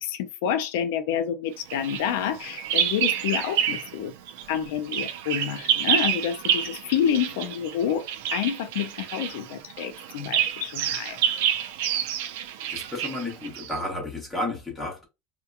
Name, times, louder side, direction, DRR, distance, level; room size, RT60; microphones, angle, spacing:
voice 1, 0.0-4.1 4.5-11.2, left 9 dB, 80° left, 0.4 m, -28 dB
Bird vocalization bird call bird song, 1.7-4.0 4.3-13.8, right 9 dB, 80° right, 0.4 m, -28 dB
voice 2, 12.7-15.1, left 1 dB, 5° left, 0.9 m, -32 dB
2.8 x 2.2 x 2.3 m
cardioid pair, 175°, 0 cm